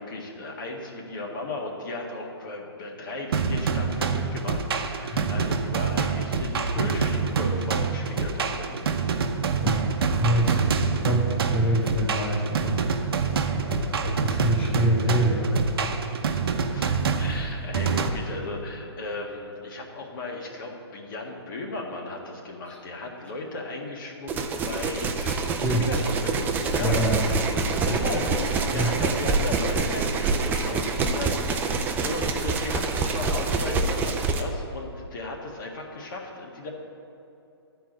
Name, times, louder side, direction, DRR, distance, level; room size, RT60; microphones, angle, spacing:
voice 1, 0.0-8.9 16.7-25.1 25.7-26.9 27.9-36.7, left 2 dB, 50° left, 0 dB, 1.6 m, -36 dB
sound 1, 3.3-18.1, right 5 dB, 60° right, 0.8 m, -26 dB
voice 2, 10.2-10.6 11.0-16.0 22.7-22.8 25.1-25.4 25.6-25.9 26.8-27.4 27.8-28.2 28.7-28.9, equal, 10° left, -5 dB, 1.1 m, -26 dB
sound 2, 24.3-34.4, right 4 dB, 15° right, 0.5 m, -26 dB
11.5 x 4.7 x 7.7 m, 2.8 s
hypercardioid pair, 140°, 14 cm